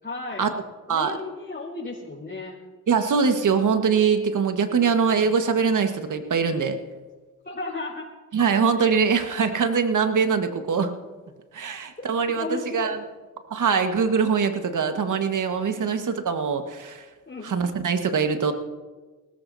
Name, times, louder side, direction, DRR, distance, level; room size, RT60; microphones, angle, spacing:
voice 1, 0.0-0.4 0.9-2.6 4.3-4.9 7.4-8.1 12.0-12.9 15.7-15.9 17.3-17.5, left 3 dB, 25° left, -6 dB, 4.5 m, -35 dB
voice 2, 2.9-6.8 8.3-10.9 11.5-13.0 13.5-17.1 17.4-18.5, right 6 dB, 50° right, 7 dB, 1.6 m, -23 dB
20.5 x 17.5 x 2.8 m, 1.3 s
hypercardioid pair, 45°, 39 cm